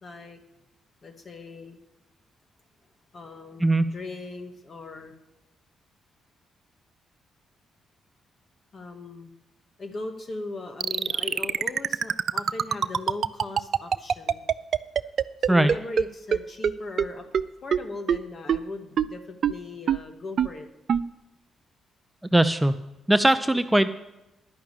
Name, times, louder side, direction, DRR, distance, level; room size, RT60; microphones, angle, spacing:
voice 1, 0.0-0.4 1.0-1.8 3.1-5.1 8.7-9.3 9.8-14.5 15.4-17.3 17.6-20.7 23.5-23.6, left 3 dB, 50° left, 5 dB, 1.9 m, -38 dB
sound 1, 10.8-16.0 16.3-16.4 16.6-16.7 17.0-17.1 17.3-17.4 17.7-17.8 18.1-18.2 18.5-18.6 19.0-19.1 19.4-19.5 19.9-20.0 20.4-20.5 20.9-21.0, right 7 dB, 60° right, 0.4 m, -22 dB
voice 2, 22.3-22.7 23.1-23.9, right 1 dB, 10° right, 10 dB, 0.7 m, -20 dB
10.5 x 5.8 x 8.8 m, 0.97 s
hypercardioid pair, 45°, 0 cm